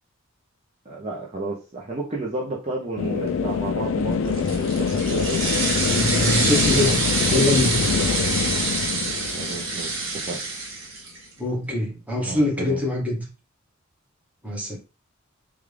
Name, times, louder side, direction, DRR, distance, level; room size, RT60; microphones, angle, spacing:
voice 1, 0.9-5.4 9.3-10.4 12.2-12.8, right 3 dB, 30° right, -4 dB, 0.6 m, -32 dB
sound 1, 3.0-10.5, left 6 dB, 65° left, 0.3 m, -25 dB
sound 2, 4.3-11.2, right 3 dB, 65° right, 1.1 m, -26 dB
voice 2, 5.8-7.0 7.3-7.9 11.4-13.2 14.4-14.8, left 2 dB, 5° right, -2 dB, 1.0 m, -24 dB
3.4 x 2.4 x 3.3 m, 0.32 s
head